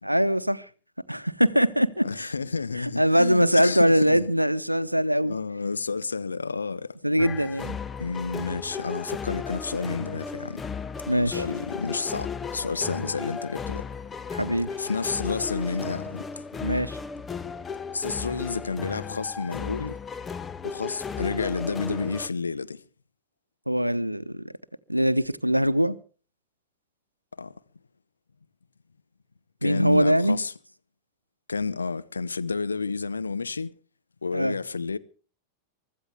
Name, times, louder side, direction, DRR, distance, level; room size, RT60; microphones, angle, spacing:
voice 1, 0.0-0.7 1.1-2.3 3.0-5.4 7.0-7.8 11.1-11.4 14.3-14.7 16.6-17.0 23.7-24.4 24.9-26.0 29.6-30.4 34.3-34.6, equal, 90° right, 0.8 m, -22 dB
voice 2, 2.0-4.3 5.2-7.0 8.0-10.6 11.3-13.9 14.8-16.4 17.9-20.0 20.6-22.8 27.4-27.5 29.6-30.5 31.5-33.7 34.2-35.0, left 4 dB, 75° left, 0.9 m, -30 dB
sound 1, 7.2-22.3, left 5 dB, 15° left, 0.7 m, -35 dB
24.0 x 14.0 x 3.5 m
figure-of-eight pair, 90°, 0 cm